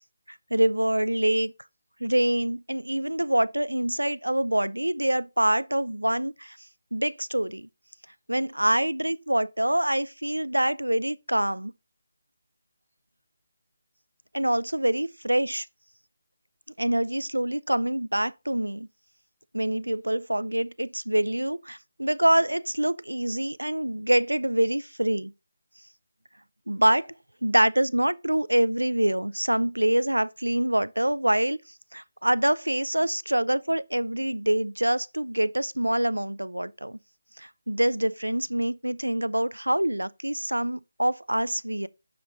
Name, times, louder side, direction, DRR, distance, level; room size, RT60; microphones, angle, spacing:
voice 1, 0.3-1.5 2.0-6.6 6.9-7.7 8.3-11.7 14.3-15.7 16.8-18.9 19.5-25.3 26.7-27.1 27.4-31.6 31.9-37.0 37.4-41.9, right 1 dB, 85° right, 0.4 m, -25 dB
12.5 x 5.1 x 3.9 m
figure-of-eight pair, 155°, 0 cm